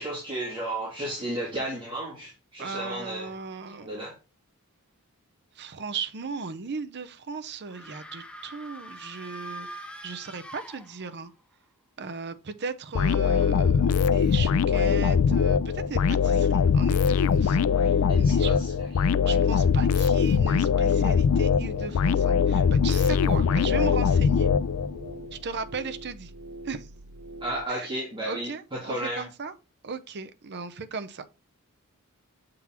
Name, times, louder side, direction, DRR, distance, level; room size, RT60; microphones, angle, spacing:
voice 1, 0.0-3.3 3.7-4.2 18.1-19.1 27.4-29.2, right 1 dB, 20° right, 2.2 m, -33 dB
voice 2, 2.6-3.9 5.6-11.3 12.0-18.5 19.2-24.5 25.3-26.3 26.6-26.9 27.7-27.9 28.2-29.5 29.8-31.2, right 5 dB, 50° right, 0.6 m, -37 dB
sound 1, 7.7-11.4, right 1 dB, 5° left, 0.6 m, -43 dB
sound 2, 12.9-25.1, left 6 dB, 70° left, 0.4 m, -22 dB
sound 3, 20.9-27.7, right 1 dB, 85° right, 0.9 m, -44 dB
7.2 x 3.8 x 4.3 m
head